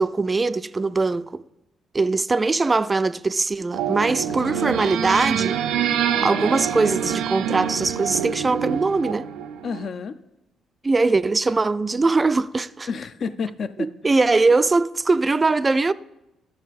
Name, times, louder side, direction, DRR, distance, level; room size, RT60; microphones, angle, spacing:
voice 1, 0.0-1.4 1.9-5.6 6.2-9.3 10.8-12.9 13.8-15.9, right 3 dB, 25° right, 0.3 m, -21 dB
sound 1, 3.7-9.9, right 9 dB, 90° right, 0.5 m, -26 dB
voice 2, 4.3-4.6 9.6-10.2 12.9-14.3, left 5 dB, 55° left, 0.5 m, -31 dB
11.0 x 6.7 x 4.1 m
cardioid pair, 90°, 0 cm